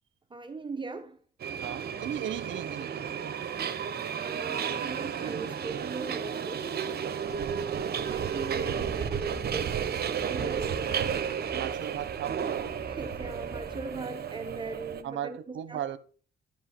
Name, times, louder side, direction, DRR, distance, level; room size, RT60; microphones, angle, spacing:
voice 1, 0.3-1.2 4.2-6.7 8.0-9.9 10.2-11.4 12.9-15.9, right 3 dB, 25° right, 1.0 m, -40 dB
Subway metro underground, 1.4-15.0, right 7 dB, 55° right, 1.2 m, -33 dB
voice 2, 1.6-3.3 7.4-7.7 10.4-10.7 11.5-12.6 15.0-16.0, right 10 dB, 70° right, 1.0 m, -37 dB
sound 1, 8.8-13.8, left 1 dB, 35° left, 2.7 m, -47 dB
12.0 x 5.4 x 6.0 m
cardioid pair, 90°, 20 cm